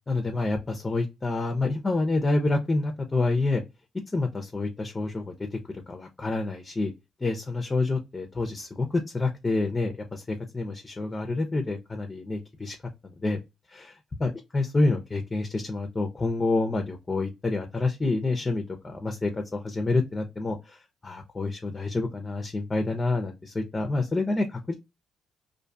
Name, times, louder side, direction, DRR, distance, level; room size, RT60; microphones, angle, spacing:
voice 1, 0.0-3.6 4.1-5.3 5.7-6.9 7.2-8.9 9.1-12.8 13.2-13.4 13.7-24.7, left 2 dB, 25° left, 0.5 m, -28 dB
2.5 x 2.3 x 2.6 m
cardioid pair, 85°, 0 cm